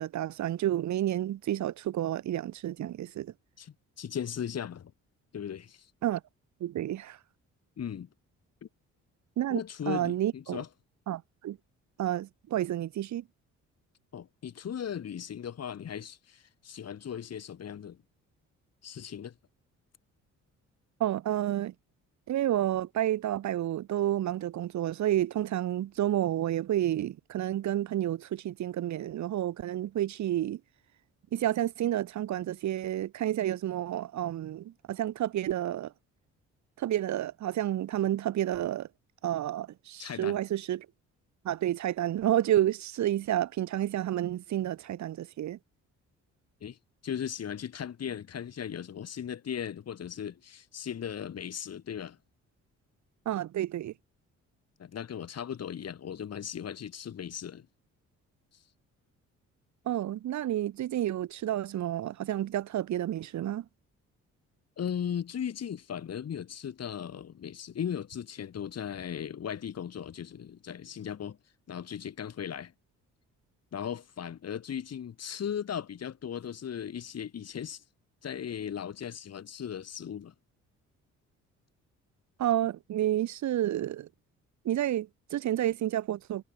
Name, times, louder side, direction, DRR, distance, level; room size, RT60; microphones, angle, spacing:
voice 1, 0.0-3.3 6.0-6.2 6.6-7.2 9.4-10.6 11.1-11.6 12.0-13.2 21.0-21.7 22.3-30.6 31.3-35.9 36.8-38.9 39.2-40.9 41.4-45.6 53.2-53.9 59.8-63.6 82.4-84.1 84.6-86.4, right 12 dB, 70° right, 1.5 m, -30 dB
voice 2, 3.6-4.9 5.3-5.9 7.8-8.1 9.5-10.7 14.1-18.0 18.8-19.3 40.0-40.4 46.6-46.8 47.0-52.2 54.8-57.7 58.5-58.6 64.8-71.4 71.7-72.7 73.7-77.8 78.2-80.3, left 8 dB, 55° left, 5.6 m, -37 dB
cardioid pair, 90°, 30 cm